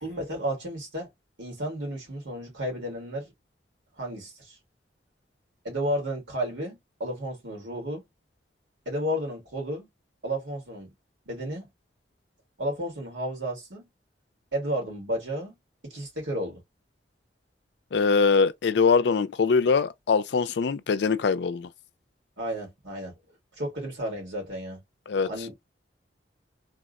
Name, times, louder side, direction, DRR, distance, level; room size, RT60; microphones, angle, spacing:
voice 1, 0.0-1.1 1.4-3.3 4.0-4.5 5.6-8.0 8.9-9.9 10.2-10.9 11.3-11.7 12.6-13.8 14.5-15.6 15.8-16.6 22.4-23.2 23.6-24.8 25.2-25.6, equal, 80° right, 1.8 m, -32 dB
voice 2, 17.9-21.7 25.1-25.3, left 5 dB, 70° left, 0.4 m, -23 dB
3.5 x 2.1 x 2.4 m
head